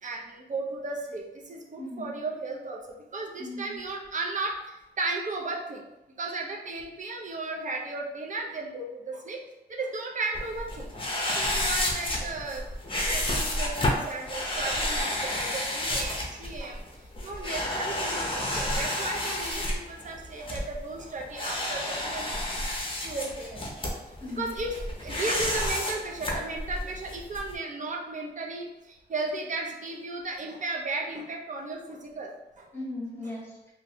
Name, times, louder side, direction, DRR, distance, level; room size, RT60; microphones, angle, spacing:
voice 1, 0.0-2.8 3.1-5.8 6.2-9.4 9.7-10.9 11.2-12.7 13.1-16.8 17.2-22.3 23.0-23.7 24.1-32.7, right 3 dB, 45° right, -1 dB, 0.5 m, -35 dB
voice 2, 1.8-2.2 3.4-3.7 24.2-24.5 32.7-33.7, left 1 dB, 15° left, -6 dB, 0.9 m, -37 dB
sound 1, 10.3-27.5, left 1 dB, 30° left, 0.6 m, -31 dB
3.1 x 2.5 x 2.6 m, 0.97 s
wide cardioid pair, 150°, 18 cm